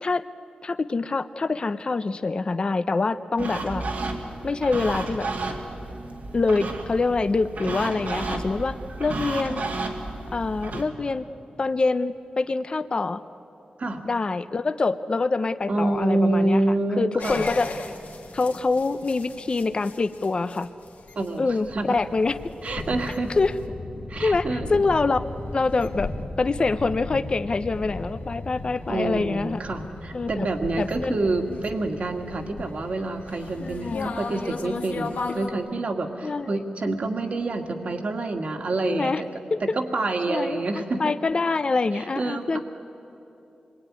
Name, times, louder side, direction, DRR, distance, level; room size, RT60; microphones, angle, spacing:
voice 1, 0.6-3.8 4.4-5.3 6.3-9.6 10.3-11.2 11.6-13.2 14.0-16.6 17.0-17.7 18.3-20.7 21.4-22.5 23.4-23.6 24.2-25.2 25.5-26.1 26.4-29.6 30.1-30.5 30.8-31.2 31.5-31.6 33.6-34.1 36.2-36.6 38.8-39.2 39.5-39.8 40.3-42.6, left 3 dB, 35° left, 11 dB, 0.6 m, -25 dB
sound 1, 3.4-10.8, right 3 dB, 85° right, 2.8 m, -32 dB
voice 2, 15.7-17.5 21.2-22.0 22.6-23.3 24.1-24.8 28.9-39.2 39.7-41.1 41.9-42.6, right 2 dB, 55° right, 5 dB, 2.1 m, -27 dB
sound 2, 17.2-35.5, left 3 dB, 90° left, 2.2 m, -36 dB
27.5 x 22.0 x 9.7 m, 2.9 s
wide cardioid pair, 150°, 3 cm